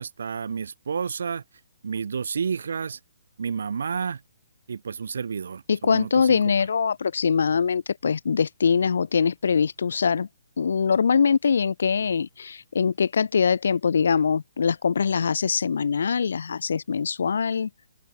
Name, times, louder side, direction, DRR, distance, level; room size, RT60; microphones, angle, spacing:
voice 1, 0.0-1.4 1.8-3.0 3.4-4.2 4.7-6.5, right 6 dB, 70° right, 5.9 m, -30 dB
voice 2, 5.7-10.3 10.6-17.7, left 6 dB, 70° left, 3.7 m, -23 dB
open air
hypercardioid pair, 175°, 0 cm